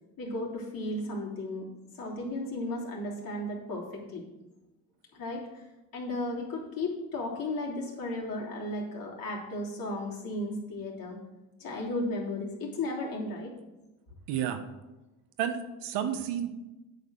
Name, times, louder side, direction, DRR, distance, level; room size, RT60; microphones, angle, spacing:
voice 1, 0.2-1.7 1.9-4.2 5.1-5.6 5.9-11.2 11.6-13.5, left 2 dB, 55° left, -3 dB, 3.0 m, -34 dB
voice 2, 14.3-14.6 15.4-16.5, right 9 dB, 75° right, 8 dB, 1.1 m, -31 dB
8.4 x 5.1 x 6.3 m, 1.0 s
supercardioid pair, 75°, 42 cm